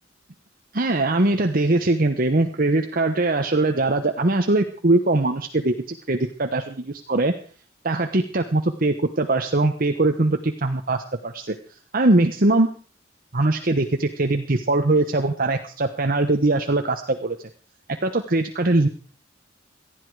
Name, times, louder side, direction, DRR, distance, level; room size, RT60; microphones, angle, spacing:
voice 1, 0.7-7.3 7.8-11.5 11.9-12.7 13.3-17.4 18.0-18.9, right 2 dB, 45° right, 5 dB, 1.1 m, -21 dB
18.5 x 13.0 x 4.8 m, 0.40 s
head